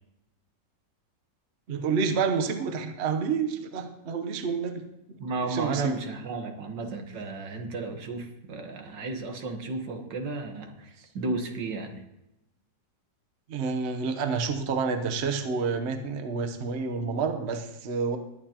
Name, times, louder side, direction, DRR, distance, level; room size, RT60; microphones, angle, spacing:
voice 1, 1.7-5.2 5.5-5.9 13.5-18.2, right 5 dB, 45° right, 7 dB, 1.1 m, -29 dB
voice 2, 5.2-12.0, right 3 dB, 80° right, 5 dB, 1.9 m, -33 dB
21.0 x 9.1 x 2.9 m, 0.90 s
omnidirectional pair, 1.9 m